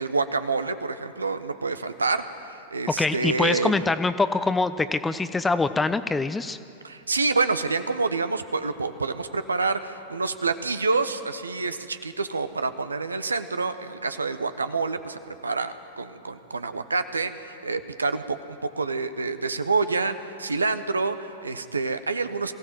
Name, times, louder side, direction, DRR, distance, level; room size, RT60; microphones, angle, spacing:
voice 1, 0.0-3.8 6.8-22.5, right 4 dB, 80° right, 10 dB, 1.0 m, -27 dB
voice 2, 3.0-6.6, left 3 dB, 10° left, 12 dB, 0.8 m, -24 dB
23.0 x 15.5 x 7.7 m, 2.6 s
figure-of-eight pair, 95°, 0 cm